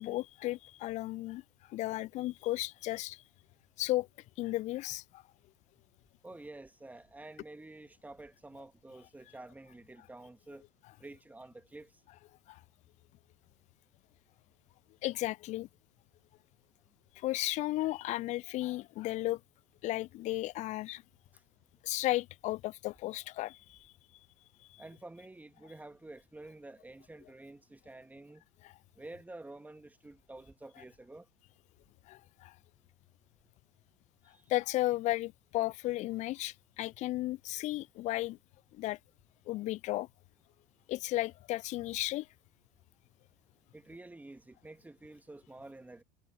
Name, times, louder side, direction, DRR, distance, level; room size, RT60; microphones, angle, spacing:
voice 1, 0.0-1.4 1.7-3.2 3.8-4.1 4.4-5.2 12.5-12.6 15.0-15.7 17.2-19.4 19.8-21.0 21.8-23.9 24.7-24.8 32.1-32.5 34.5-38.4 38.7-39.0 39.5-40.1 40.9-42.3, left 17 dB, 35° left, 0.4 m, -34 dB
voice 2, 6.2-10.6 11.0-11.9 24.8-28.4 29.0-31.3 34.3-34.4 43.7-46.0, right 2 dB, 10° right, 2.0 m, -50 dB
figure-of-eight pair, 75°, 21 cm